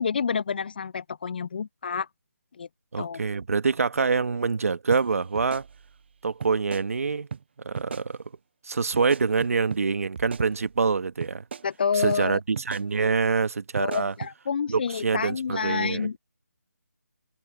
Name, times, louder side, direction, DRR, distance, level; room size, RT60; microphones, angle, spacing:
voice 1, 0.0-2.1 2.6-2.7 3.0-3.2 11.6-12.4 13.8-16.2, left 6 dB, 35° left, 0.4 m, -28 dB
voice 2, 2.9-5.6 6.2-7.3 7.6-8.2 8.6-11.4 11.9-14.1 14.7-16.1, right 5 dB, 60° right, 1.4 m, -25 dB
sound 1, 4.9-5.0 5.4-6.1 6.4-6.9 7.3-7.4 7.8-8.1 9.0-9.8 10.2-10.9 11.2-11.7 12.1-12.2 12.6-12.9 13.8-14.3, right 6 dB, 40° right, 0.4 m, -37 dB
figure-of-eight pair, 160°, 9 cm